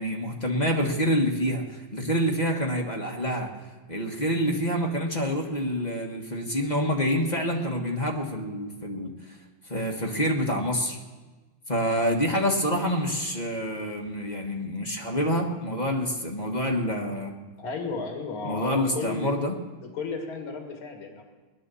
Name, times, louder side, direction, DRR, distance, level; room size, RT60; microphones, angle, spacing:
voice 1, 0.0-3.5 3.9-9.4 9.7-11.0 11.7-17.3 18.4-19.6, equal, 25° left, 1 dB, 1.3 m, -27 dB
voice 2, 17.6-19.4 19.8-21.2, left 4 dB, 75° left, 3 dB, 2.8 m, -33 dB
19.5 x 10.5 x 6.9 m, 1.3 s
omnidirectional pair, 2.4 m